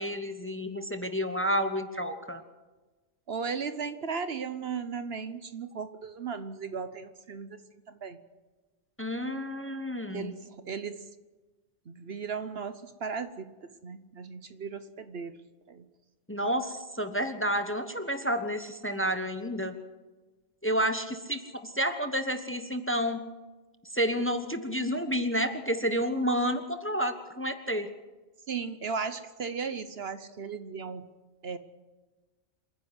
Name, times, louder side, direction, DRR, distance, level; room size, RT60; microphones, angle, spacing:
voice 1, 0.0-2.4 9.0-10.4 16.3-19.7 20.6-23.2 23.9-27.9, equal, 10° left, 8 dB, 1.0 m, -30 dB
voice 2, 3.3-7.6 7.9-8.2 10.1-11.1 11.9-15.4 15.7-15.9 28.5-31.1 31.4-31.6, right 5 dB, 55° right, 12 dB, 1.1 m, -36 dB
27.0 x 10.0 x 9.8 m, 1.2 s
omnidirectional pair, 1.3 m